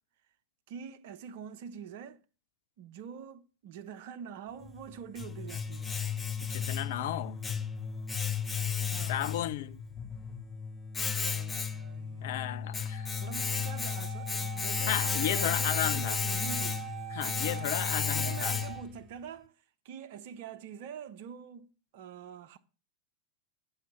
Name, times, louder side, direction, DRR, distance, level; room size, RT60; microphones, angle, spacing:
voice 1, 0.7-2.2 2.8-6.0 8.9-9.2 11.2-12.3 13.2-16.9 17.4-17.8 18.2-21.7 21.9-22.6, right 7 dB, 50° right, 0.8 m, -45 dB
Domestic sounds home sounds, 4.6-19.0, left 6 dB, 15° left, 0.7 m, -34 dB
voice 2, 6.5-7.4 9.1-9.8 12.2-13.1 14.9-16.2 17.1-18.6, left 13 dB, 50° left, 0.5 m, -34 dB
Wind instrument woodwind instrument, 12.9-18.8, right 14 dB, 30° right, 5.5 m, -43 dB
7.5 x 5.6 x 7.2 m
figure-of-eight pair, 90°, 0 cm